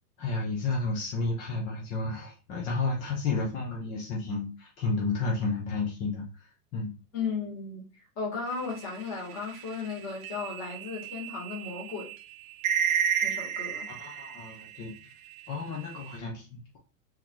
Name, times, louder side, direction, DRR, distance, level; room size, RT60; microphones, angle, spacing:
voice 1, 0.2-6.9 13.9-14.9 15.5-16.8, left 3 dB, 20° left, 0.3 m, -32 dB
voice 2, 7.1-7.8 8.2-12.1 13.2-13.9, left 5 dB, 35° left, 1.9 m, -35 dB
sound 1, 8.6-14.9 15.3-16.2, right 8 dB, 55° right, 0.6 m, -32 dB
3.7 x 2.9 x 3.0 m
hypercardioid pair, 130°, 48 cm